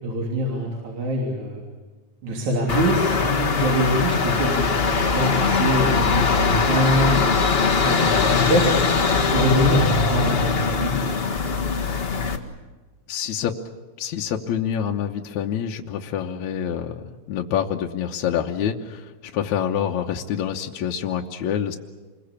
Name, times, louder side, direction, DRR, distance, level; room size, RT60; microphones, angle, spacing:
voice 1, 0.0-1.6 2.2-7.3 7.6-8.7 9.3-11.0, equal, 60° right, -1 dB, 4.5 m, -24 dB
sound 1, 2.7-12.4, left 5 dB, 35° left, 1.0 m, -21 dB
voice 2, 13.1-13.6 14.0-21.8, left 9 dB, 70° left, 1 dB, 2.2 m, -26 dB
27.5 x 22.0 x 8.5 m, 1.3 s
omnidirectional pair, 3.8 m